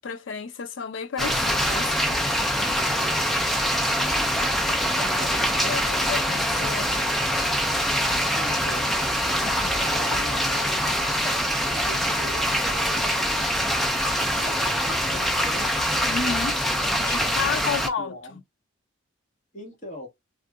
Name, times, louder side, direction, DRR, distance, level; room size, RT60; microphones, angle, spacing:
voice 1, 0.0-2.3 2.7-3.0 5.7-6.9 9.4-9.7 16.1-16.6 17.0-18.4, left 6 dB, 70° left, 0.5 m, -32 dB
sound 1, 1.2-17.9, equal, ahead, 0.4 m, -24 dB
voice 2, 2.8-5.7 8.3-9.1 9.8-10.8 11.7-13.5 14.3-15.7 16.1-16.3 17.4-18.4 19.5-20.1, equal, 40° left, 1.5 m, -42 dB
3.6 x 2.5 x 2.2 m
head